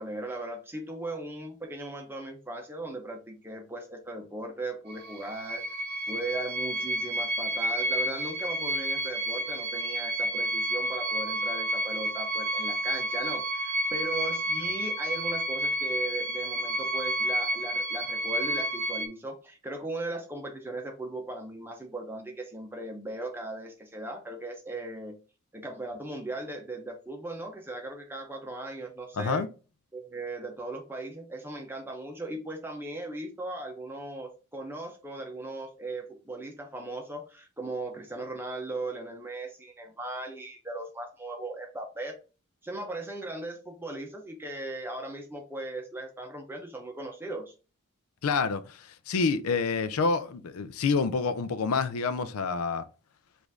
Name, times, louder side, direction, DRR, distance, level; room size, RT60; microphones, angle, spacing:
voice 1, 0.0-5.6 6.1-25.2 25.5-29.5 29.9-42.2 42.6-47.5, right 2 dB, 10° right, 0.7 m, -38 dB
sound 1, 4.9-19.1, right 1 dB, 50° right, 0.6 m, -30 dB
voice 2, 29.2-29.5 48.2-52.8, left 4 dB, 85° left, 0.5 m, -28 dB
5.0 x 2.6 x 3.5 m
head